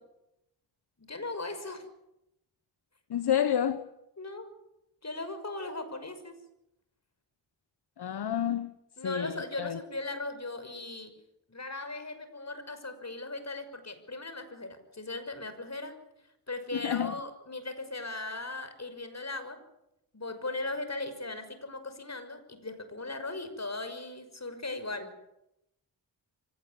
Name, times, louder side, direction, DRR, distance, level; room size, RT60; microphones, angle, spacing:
voice 1, 1.0-1.9 4.2-4.5 5.0-6.4 9.0-11.2 11.5-16.0 16.5-19.6 20.1-25.1, left 2 dB, 40° left, 6.1 m, -38 dB
voice 2, 3.1-3.9 8.0-8.7 9.0-9.8 16.7-17.1, left 9 dB, 65° left, 1.1 m, -29 dB
24.5 x 18.0 x 9.7 m
cardioid pair, 40°, 41 cm